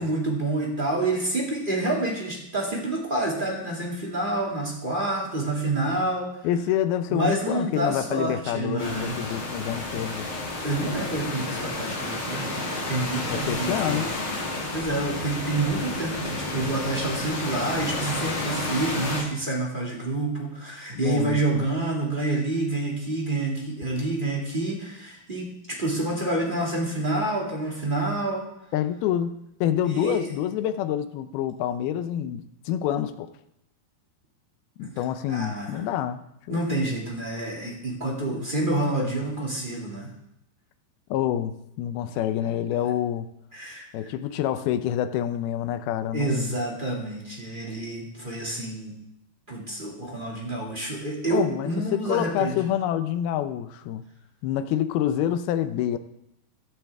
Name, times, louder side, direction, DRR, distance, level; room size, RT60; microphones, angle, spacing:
voice 1, 0.0-6.5 7.1-9.2 10.6-14.0 14.5-28.4 29.8-30.2 34.8-34.9 35.3-35.8 36.5-40.1 43.5-44.1 46.1-49.0 49.5-52.6, right 2 dB, 20° right, -2 dB, 1.6 m, -28 dB
voice 2, 6.4-10.3 13.3-14.1 21.0-21.7 28.7-33.3 34.8-36.2 36.5-36.6 38.4-38.5 41.1-43.3 43.9-46.6 51.3-54.0 54.4-56.0, left 10 dB, 80° left, 11 dB, 2.5 m, -27 dB
sound 1, 8.8-19.2, left 2 dB, 55° left, 7.8 m, -31 dB
15.5 x 12.5 x 3.5 m, 0.81 s
omnidirectional pair, 4.6 m